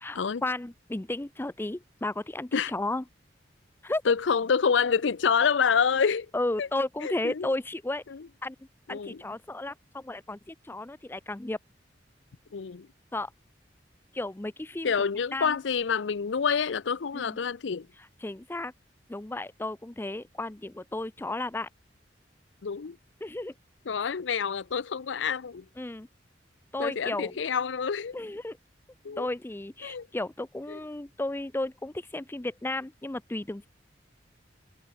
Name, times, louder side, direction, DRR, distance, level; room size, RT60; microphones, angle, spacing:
voice 1, 0.0-3.0 3.8-4.0 6.3-8.0 8.4-8.6 8.9-11.6 13.1-13.3 14.1-14.9 15.3-15.6 17.1-17.4 18.2-18.7 19.1-21.7 23.2-23.5 25.8-26.1 26.7-27.4 28.1-28.6 29.2-33.7, left 2 dB, 10° left, 0.5 m, -33 dB
voice 2, 4.1-6.3 6.6-6.7 7.0-7.5 8.1-8.2 8.9-9.2 12.5-12.9 14.8-17.9 22.6-23.0 23.9-25.6 26.8-28.2 29.0-29.3 29.8-30.1 30.7-30.8, left 6 dB, 85° left, 0.6 m, -27 dB
head